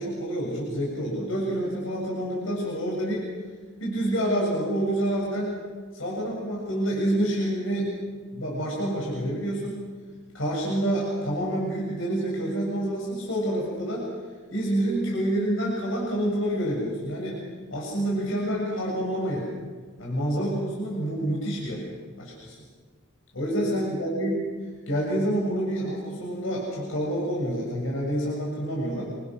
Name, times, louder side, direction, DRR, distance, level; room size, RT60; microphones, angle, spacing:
voice 1, 0.0-3.2 3.8-5.5 5.9-7.9 8.3-9.8 10.3-14.1 14.5-17.4 17.7-19.5 20.0-21.8 22.2-22.6 23.3-24.4 24.9-29.0, right 1 dB, 70° left, -3 dB, 7.5 m, -27 dB
27.5 x 26.5 x 6.5 m, 1.4 s
head